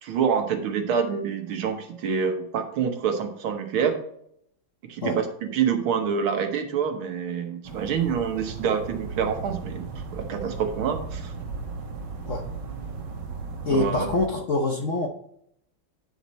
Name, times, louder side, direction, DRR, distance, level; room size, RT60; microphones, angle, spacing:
voice 1, 0.0-4.0 4.8-9.9 10.1-11.3 13.7-14.1, right 7 dB, 90° right, 6 dB, 1.9 m, -26 dB
sound 1, 7.6-14.3, right 4 dB, 60° right, 1.7 m, -36 dB
voice 2, 13.6-15.1, left 3 dB, 55° left, 3 dB, 0.9 m, -25 dB
9.2 x 5.9 x 4.2 m, 0.71 s
omnidirectional pair, 2.2 m